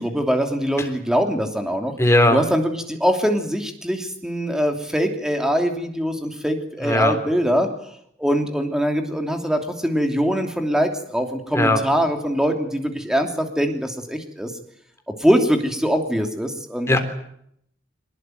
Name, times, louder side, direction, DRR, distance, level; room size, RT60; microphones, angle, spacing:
voice 1, 0.0-1.9 2.3-7.7 8.2-14.5 15.2-17.0, equal, 5° right, 4 dB, 2.9 m, -22 dB
voice 2, 2.0-2.4 6.8-7.2 11.5-11.8 16.9-17.0, left 1 dB, 15° left, 5 dB, 3.6 m, -17 dB
23.5 x 20.0 x 9.3 m, 0.72 s
head